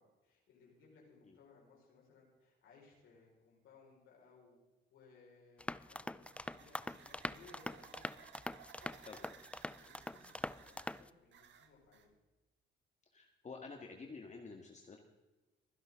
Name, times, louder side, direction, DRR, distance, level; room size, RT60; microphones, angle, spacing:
voice 1, 0.0-4.6 4.9-9.4 9.8-12.1, left 4 dB, 85° left, -3 dB, 5.0 m, -64 dB
sound 1, 5.6-11.1, left 1 dB, 5° left, 0.4 m, -44 dB
sound 2, 5.8-12.1, right 8 dB, 65° right, 1.5 m, -60 dB
voice 2, 13.1-15.0, left 4 dB, 35° left, 2 dB, 1.8 m, -50 dB
24.0 x 11.0 x 3.7 m, 1.1 s
cardioid pair, 90°, 20 cm